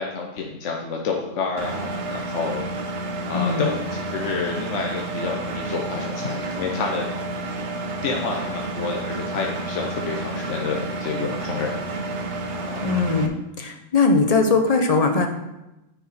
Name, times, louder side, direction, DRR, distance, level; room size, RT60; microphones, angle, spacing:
voice 1, 0.0-3.0 3.2-7.1 8.0-11.7 12.6-12.9, left 4 dB, 75° left, 0 dB, 1.1 m, -29 dB
Engine, 1.6-13.3, right 2 dB, 70° right, 1.0 m, -30 dB
voice 2, 3.3-3.7 12.8-15.3, left 3 dB, 35° left, 4 dB, 0.8 m, -20 dB
9.8 x 4.7 x 4.2 m, 0.95 s
omnidirectional pair, 1.3 m